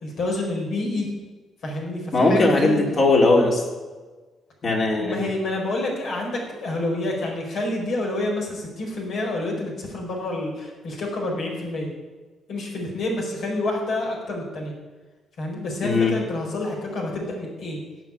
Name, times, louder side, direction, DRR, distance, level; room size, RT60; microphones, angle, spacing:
voice 1, 0.0-1.1 1.6-2.8 5.0-11.9 12.5-14.7 15.4-17.8, left 2 dB, 70° left, -1 dB, 4.7 m, -28 dB
voice 2, 2.1-3.6 4.6-5.2 15.8-16.1, left 2 dB, 45° left, -1 dB, 3.9 m, -19 dB
16.5 x 6.2 x 8.6 m, 1.3 s
cardioid pair, 90°, 0 cm